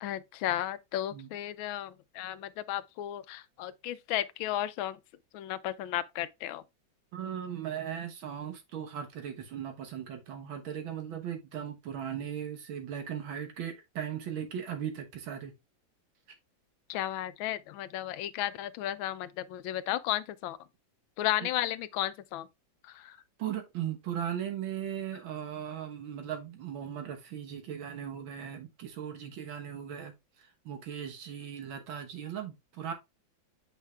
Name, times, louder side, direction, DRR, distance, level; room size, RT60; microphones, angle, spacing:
voice 1, 0.0-5.0 5.3-6.6 16.9-20.6 21.2-22.5 22.8-23.2, left 13 dB, 85° left, 1.4 m, -34 dB
voice 2, 7.1-15.5 23.4-32.9, right 9 dB, 90° right, 2.0 m, -38 dB
7.3 x 5.6 x 2.4 m
omnidirectional pair, 2.1 m